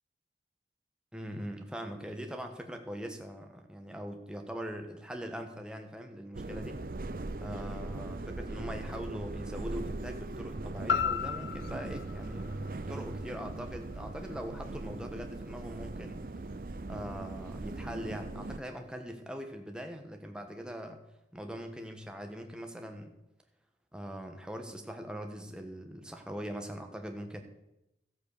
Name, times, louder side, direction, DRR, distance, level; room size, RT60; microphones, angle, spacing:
voice 1, 1.1-6.8 7.4-16.2 16.9-21.0 21.3-23.1 23.9-27.4, equal, 5° right, 4 dB, 1.2 m, -41 dB
sound 1, 6.3-18.6, right 2 dB, 50° right, 0.6 m, -40 dB
sound 2, 10.9-15.0 15.4-15.5, left 7 dB, 75° left, 0.4 m, -36 dB
13.5 x 8.0 x 6.6 m, 0.88 s
head